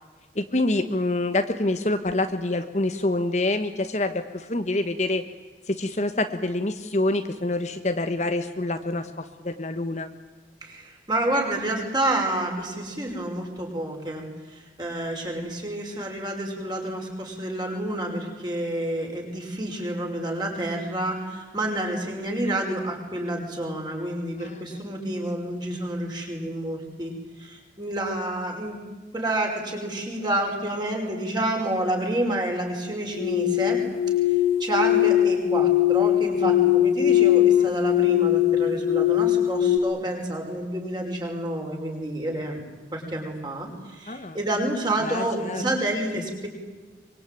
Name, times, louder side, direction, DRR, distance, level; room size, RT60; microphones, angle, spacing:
voice 1, 0.3-5.2 5.7-10.1 24.4-24.6 44.1-44.4 45.0-45.6, left 2 dB, 40° left, 8 dB, 1.1 m, -26 dB
voice 2, 10.6-27.1 27.4-28.8 29.1-33.8 34.3-42.6 42.9-46.5, right 1 dB, 25° right, 0 dB, 5.4 m, -29 dB
sound 1, 33.2-39.8, left 12 dB, 65° left, 1.5 m, -21 dB
24.5 x 23.0 x 9.2 m, 1.3 s
head